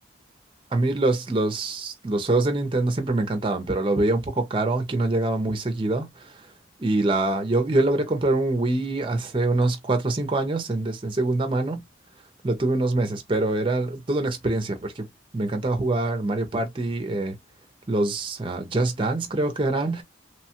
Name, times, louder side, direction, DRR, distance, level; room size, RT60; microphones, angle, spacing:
voice 1, 0.7-6.3 6.8-11.8 12.4-15.1 15.3-17.3 17.9-20.0, right 2 dB, 25° right, 0.5 m, -24 dB
3.0 x 2.2 x 2.8 m
head